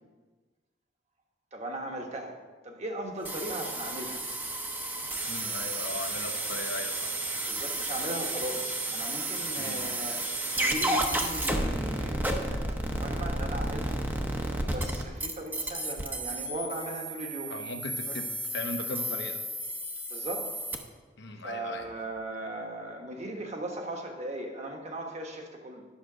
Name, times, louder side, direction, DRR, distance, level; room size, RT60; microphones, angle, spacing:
voice 1, 1.5-2.4 2.6-4.2 7.4-14.0 14.6-17.5 18.1-18.2 20.1-20.6 21.4-25.9, right 1 dB, 40° right, 2 dB, 1.3 m, -38 dB
sound 1, 3.3-20.8, right 1 dB, 10° right, 0.8 m, -32 dB
voice 2, 5.3-7.2 9.6-9.9 17.5-19.4 21.2-21.8, left 2 dB, 65° left, 5 dB, 1.0 m, -38 dB
10.5 x 6.4 x 5.0 m, 1.3 s
head